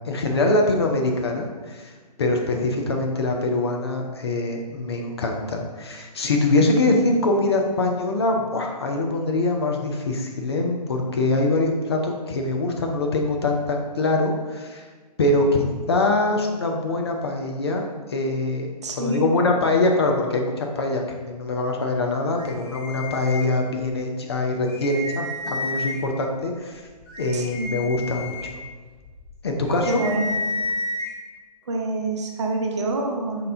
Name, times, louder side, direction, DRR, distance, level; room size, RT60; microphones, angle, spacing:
voice 1, 0.0-1.9 2.2-14.9 15.2-17.8 18.1-18.7 19.0-26.9 27.2-28.3 29.4-30.0, left 2 dB, 40° left, 2 dB, 0.4 m, -23 dB
voice 2, 18.8-19.3 27.3-27.7 29.9-30.4 31.7-33.5, right 2 dB, 45° right, 1 dB, 0.6 m, -26 dB
sound 1, 22.3-23.9 24.3-24.4 24.7-26.2 26.7-31.1, left 2 dB, 10° left, 0.8 m, -32 dB
5.1 x 2.8 x 2.6 m, 1.4 s
figure-of-eight pair, 130°, 21 cm